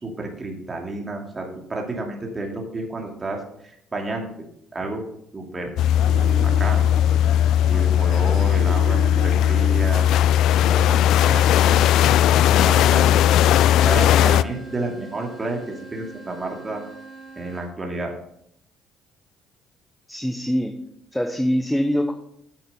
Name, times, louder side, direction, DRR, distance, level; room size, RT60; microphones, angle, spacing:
voice 1, 0.0-4.3 4.7-5.0 5.3-5.7 6.2-6.8 7.6-10.1 10.6-11.9 12.3-13.1 13.8-16.8 17.4-18.1, right 2 dB, 25° right, 1 dB, 2.5 m, -31 dB
sound 1, 5.8-14.4, left 11 dB, 70° left, 0.3 m, -17 dB
sound 2, 6.1-10.7, right 7 dB, 65° right, 0.8 m, -36 dB
sound 3, 13.6-17.7, right 3 dB, 30° left, 4.4 m, -42 dB
voice 2, 20.1-20.7 21.1-22.1, equal, 5° left, 5 dB, 1.0 m, -23 dB
8.6 x 7.7 x 5.5 m, 0.74 s
supercardioid pair, 80°, 0 cm